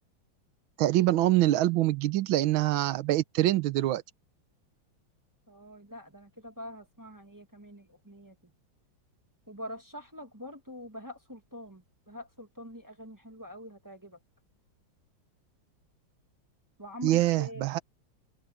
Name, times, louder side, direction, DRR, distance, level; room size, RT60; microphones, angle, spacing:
voice 1, 0.8-4.0 17.0-17.8, right 15 dB, 85° right, 1.5 m, -25 dB
voice 2, 5.5-8.5 9.5-14.2 16.8-17.7, equal, 10° right, 1.4 m, -45 dB
open air
omnidirectional pair, 2.1 m